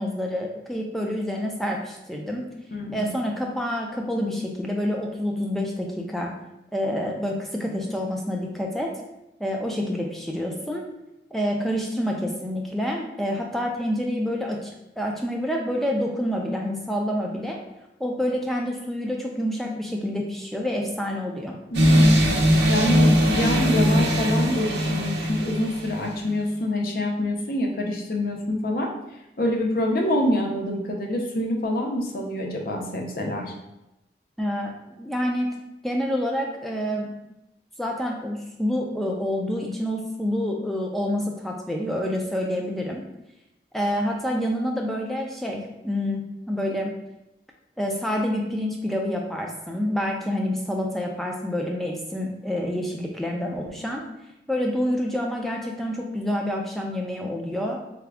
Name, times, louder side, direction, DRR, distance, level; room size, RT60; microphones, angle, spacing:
voice 1, 0.0-2.5 2.9-6.3 6.7-8.9 9.4-10.8 11.3-14.7 15.0-17.6 18.0-21.5 34.4-35.5 35.8-37.1 37.8-43.0 43.7-46.2 46.5-46.9 47.8-54.0 54.5-57.8, equal, ahead, 0 dB, 0.4 m, -27 dB
voice 2, 2.7-3.1 21.7-22.2 22.7-28.9 29.4-33.5, left 1 dB, 55° left, 1 dB, 0.5 m, -26 dB
sound 1, 21.7-26.1, equal, 80° right, 0.6 m, -20 dB
3.6 x 2.3 x 3.4 m, 0.91 s
head